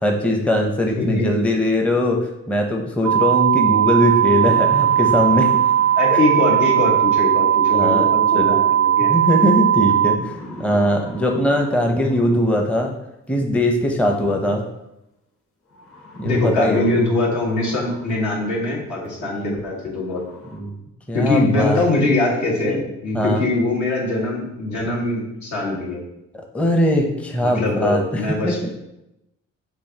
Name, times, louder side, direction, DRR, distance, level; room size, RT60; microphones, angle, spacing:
voice 1, 0.0-5.6 6.1-6.2 7.7-8.0 8.3-8.6 9.1-10.3 10.6-12.9 13.3-14.6 16.2-16.8 19.2-19.6 20.5-20.7 21.1-22.1 22.7-22.8 23.1-23.4 26.5-28.6, equal, 5° left, 2 dB, 0.6 m, -20 dB
voice 2, 1.0-1.3 5.9-9.1 16.2-20.2 21.1-26.0 27.4-28.6, left 2 dB, 75° left, -4 dB, 1.5 m, -22 dB
sound 1, 3.0-10.2, right 10 dB, 75° right, 0.5 m, -17 dB
sound 2, 3.4-3.5 4.0-7.4 8.8-9.2 10.0-12.8 14.1-14.2 15.7-18.6 19.0-19.1 19.7-19.8 20.0-20.6, left 1 dB, 45° left, 1.2 m, -41 dB
6.8 x 2.7 x 2.8 m, 0.87 s
cardioid pair, 90°, 30 cm